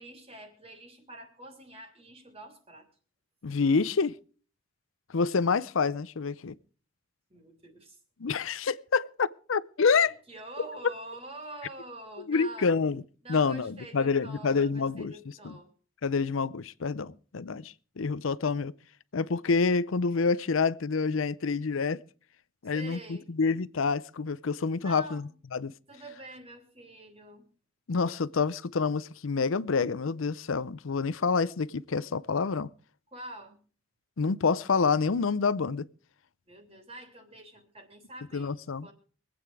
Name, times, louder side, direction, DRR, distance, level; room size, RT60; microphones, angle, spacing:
voice 1, 0.0-2.9 7.3-8.0 9.9-12.7 13.2-15.7 22.7-23.3 24.8-25.3 25.9-27.5 33.1-33.6 36.5-38.5 38.8-38.9, right 1 dB, 30° right, 3.2 m, -46 dB
voice 2, 3.4-4.1 5.1-6.5 8.2-10.1 12.3-13.0 13.3-15.1 15.4-15.6 16.0-18.7 19.1-22.0 22.6-25.7 27.9-32.7 34.2-35.8 38.3-38.9, left 5 dB, 75° left, 0.6 m, -27 dB
23.5 x 8.8 x 4.7 m
head